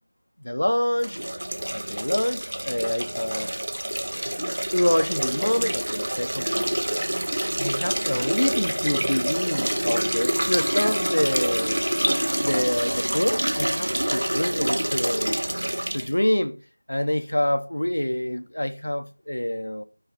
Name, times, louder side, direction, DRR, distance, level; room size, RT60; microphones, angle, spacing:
voice 1, 0.4-1.2 1.7-3.5 4.3-4.4 4.7-6.7 7.6-11.8 12.4-15.4 15.9-16.6 16.9-19.8, left 1 dB, 90° left, 0.6 m, -26 dB
sound 1, 1.0-16.1, right 1 dB, 60° right, 0.6 m, -27 dB
sound 2, 9.9-14.7, left 2 dB, 15° left, 0.4 m, -38 dB
5.6 x 3.4 x 5.5 m
figure-of-eight pair, 180°, 0 cm